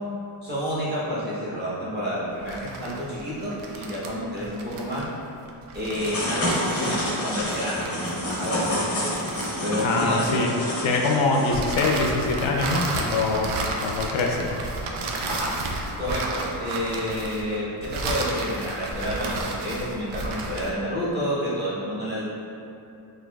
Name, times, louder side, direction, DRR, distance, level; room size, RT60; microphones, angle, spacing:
voice 1, 0.4-5.1 5.7-9.0 9.6-10.5 15.2-15.5 16.0-22.2, equal, 20° right, -10 dB, 1.0 m, -29 dB
sound 1, 2.4-10.2 11.5-20.8, right 2 dB, 80° right, 0.6 m, -32 dB
sound 2, 5.9-11.6, left 1 dB, 30° left, 0.6 m, -28 dB
voice 2, 9.8-10.5 10.8-13.5 13.8-14.5, left 3 dB, 70° left, 0 dB, 0.6 m, -23 dB
6.2 x 2.6 x 2.3 m, 2.7 s
wide cardioid pair, 170°, 49 cm